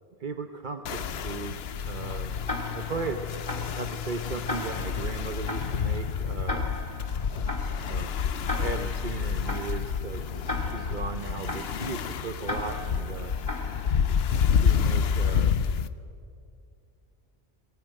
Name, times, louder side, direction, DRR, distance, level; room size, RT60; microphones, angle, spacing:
voice 1, 0.2-2.3 2.7-6.7 7.8-8.2 8.5-13.3 14.5-15.6, right 4 dB, 50° right, 7 dB, 1.1 m, -37 dB
sound 1, 0.9-15.9, left 7 dB, 70° left, 1.0 m, -29 dB
Tick-tock, 2.5-14.3, left 1 dB, 30° left, 2.5 m, -38 dB
23.0 x 18.0 x 9.2 m, 2.5 s
omnidirectional pair, 1.1 m